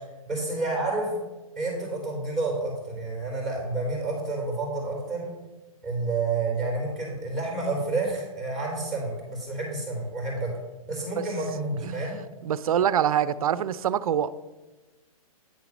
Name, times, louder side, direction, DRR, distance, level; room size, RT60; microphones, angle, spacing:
voice 1, 0.3-1.2 1.6-5.3 5.8-10.5 10.8-12.1, right 3 dB, ahead, -3 dB, 3.0 m, -29 dB
voice 2, 12.4-14.3, right 9 dB, 75° right, 17 dB, 0.5 m, -25 dB
9.4 x 4.0 x 6.0 m, 1.1 s
hypercardioid pair, 155°, 19 cm